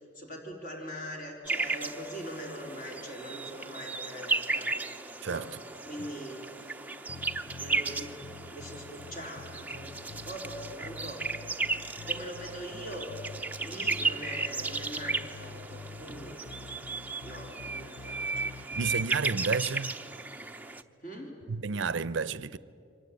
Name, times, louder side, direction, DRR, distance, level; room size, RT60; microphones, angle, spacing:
voice 1, 0.1-4.8 5.3-5.5 5.9-6.7 7.6-8.2 8.5-11.3 12.0-13.1 13.6-16.5 16.9-18.8 21.0-21.4, equal, 45° left, 4.1 m, -42 dB
sound 1, 1.4-20.8, right 3 dB, 10° right, 0.7 m, -35 dB
voice 2, 5.2-5.6 18.8-19.9 21.5-22.6, right 5 dB, 60° right, 0.6 m, -31 dB
sound 2, 7.1-19.0, left 4 dB, 60° left, 0.6 m, -47 dB
28.5 x 25.0 x 8.3 m
head